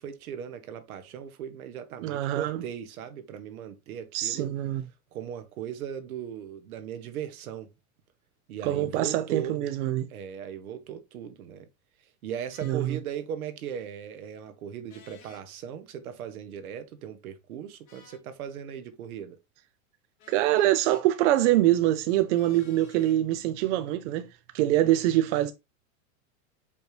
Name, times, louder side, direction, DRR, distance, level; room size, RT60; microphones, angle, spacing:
voice 1, 0.0-4.5 5.1-7.7 8.5-9.6 10.1-11.7 12.0-19.4, right 9 dB, 85° right, 1.0 m, -38 dB
voice 2, 2.0-2.6 4.1-4.8 8.7-10.1 12.6-13.0 20.3-24.3 24.5-25.5, right 14 dB, 55° right, 0.6 m, -24 dB
sound 1, 12.5-12.8 14.9-15.4 17.9-18.3 20.2-21.0 22.3-23.2, left 5 dB, 50° left, 2.2 m, -54 dB
5.2 x 3.2 x 3.1 m
supercardioid pair, 145°, 42 cm